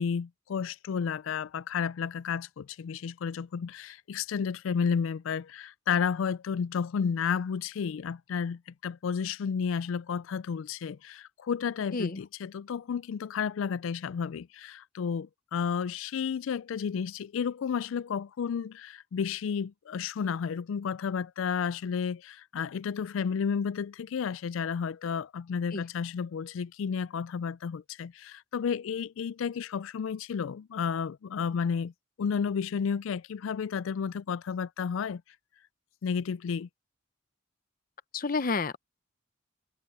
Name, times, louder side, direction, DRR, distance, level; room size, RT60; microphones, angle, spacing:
voice 1, 0.0-31.9 32.2-35.2 36.0-36.7, left 6 dB, 75° left, 0.4 m, -32 dB
voice 2, 38.1-38.8, left 4 dB, 40° left, 0.7 m, -30 dB
head